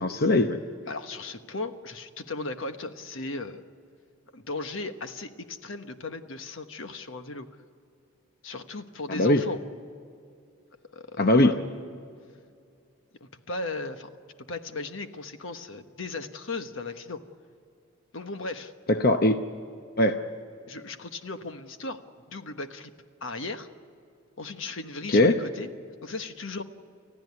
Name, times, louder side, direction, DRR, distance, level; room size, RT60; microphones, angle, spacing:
voice 1, 0.0-0.6 9.1-9.4 11.2-11.5 18.9-19.4 20.0-20.1 25.1-25.4, left 1 dB, 45° left, 6 dB, 0.8 m, -20 dB
voice 2, 0.9-3.6 4.3-7.5 8.4-9.6 10.9-11.5 13.2-14.1 14.5-17.2 18.1-18.7 20.7-22.0 22.3-22.9 23.2-23.7 24.4-25.7 26.0-26.6, left 3 dB, 70° left, 8 dB, 1.2 m, -36 dB
30.0 x 15.0 x 9.6 m, 2.4 s
head